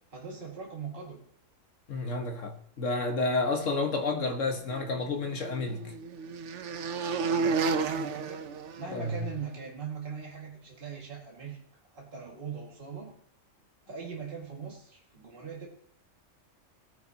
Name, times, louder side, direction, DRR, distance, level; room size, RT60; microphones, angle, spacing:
voice 1, 0.1-1.2 7.3-8.4 8.8-11.6 11.9-13.1 13.9-15.7, right 6 dB, 45° right, 2.2 m, -41 dB
voice 2, 1.9-5.9 8.9-9.3, left 3 dB, 70° left, 1.8 m, -30 dB
sound 1, 4.7-9.4, right 5 dB, 65° right, 1.1 m, -32 dB
18.0 x 9.8 x 2.8 m
omnidirectional pair, 1.3 m